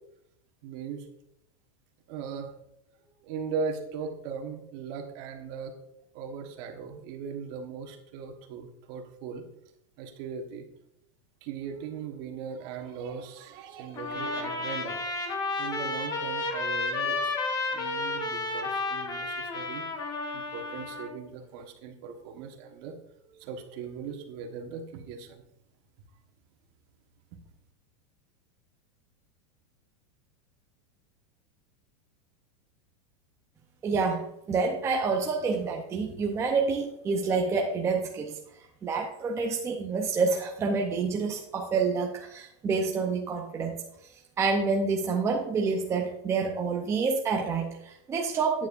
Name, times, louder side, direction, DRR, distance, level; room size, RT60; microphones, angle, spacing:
voice 1, 0.6-1.1 2.1-2.5 3.2-5.8 6.1-9.4 10.0-10.7 11.4-15.3 15.6-17.3 17.6-19.8 20.3-25.4, right 6 dB, 50° right, 4 dB, 1.4 m, -39 dB
Trumpet, 13.9-21.1, left 3 dB, 25° left, 1.1 m, -32 dB
voice 2, 33.8-38.4 38.8-43.8 44.4-48.7, right 4 dB, 15° right, 1 dB, 0.7 m, -28 dB
9.4 x 9.1 x 2.6 m, 0.79 s
supercardioid pair, 155°, 17 cm